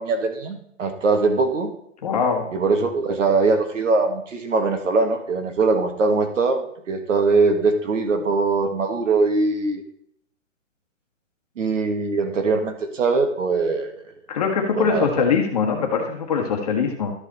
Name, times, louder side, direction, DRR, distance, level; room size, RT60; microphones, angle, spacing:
voice 1, 0.0-1.7 2.5-9.8 11.6-13.9 14.7-15.1, right 3 dB, 70° right, 6 dB, 1.7 m, -21 dB
voice 2, 2.0-2.5 14.3-17.1, left 6 dB, 30° left, 2 dB, 1.3 m, -22 dB
12.5 x 4.9 x 4.1 m, 0.70 s
hypercardioid pair, 175°, 40 cm